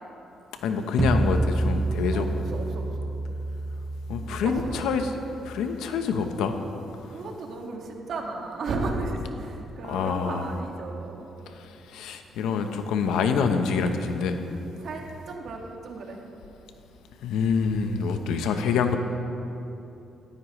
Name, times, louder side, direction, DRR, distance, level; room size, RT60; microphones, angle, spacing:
voice 1, 0.6-2.4 4.1-5.1 5.4-6.6 9.8-10.5 11.6-14.4 17.2-19.0, left 5 dB, 85° left, 6 dB, 0.9 m, -26 dB
sound 1, 1.0-6.0, right 2 dB, 10° right, 0.3 m, -29 dB
voice 2, 2.1-3.1 4.2-4.7 7.1-11.3 14.8-16.2, right 3 dB, 65° right, 1 dB, 1.9 m, -34 dB
17.0 x 14.0 x 3.2 m, 2.9 s
cardioid pair, 90°, 0 cm